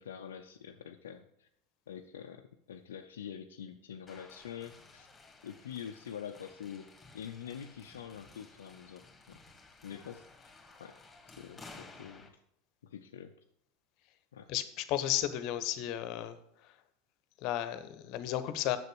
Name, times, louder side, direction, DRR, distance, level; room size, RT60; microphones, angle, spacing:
voice 1, 0.0-1.5 1.9-5.1 5.4-9.4 9.8-10.5 10.8-11.0 11.4-12.3 12.8-13.3 14.3-14.5, left 8 dB, 80° left, 5 dB, 0.6 m, -46 dB
sound 1, 4.1-12.3, left 3 dB, 20° left, 2.1 m, -55 dB
voice 2, 14.5-16.4 16.6-16.7 17.4-18.8, left 12 dB, 55° left, 12 dB, 1.0 m, -33 dB
6.9 x 6.6 x 7.9 m, 0.74 s
hypercardioid pair, 80°, 0 cm